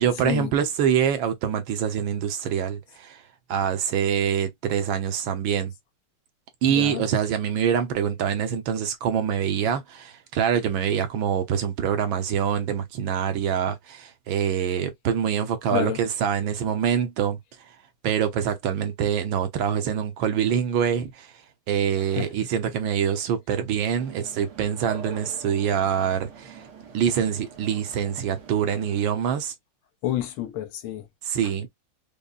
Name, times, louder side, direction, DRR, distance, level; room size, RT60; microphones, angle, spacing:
voice 1, 0.0-3.2 3.5-5.7 6.6-17.8 18.0-21.3 21.7-26.7 26.9-29.5 31.2-31.7, right 8 dB, 75° right, 1.5 m, -25 dB
voice 2, 6.7-7.1 15.7-16.0 22.0-22.3 30.0-31.1, left 13 dB, 85° left, 1.6 m, -29 dB
sound 1, 24.0-29.1, right 6 dB, 90° right, 2.0 m, -43 dB
5.2 x 2.1 x 2.4 m
omnidirectional pair, 2.3 m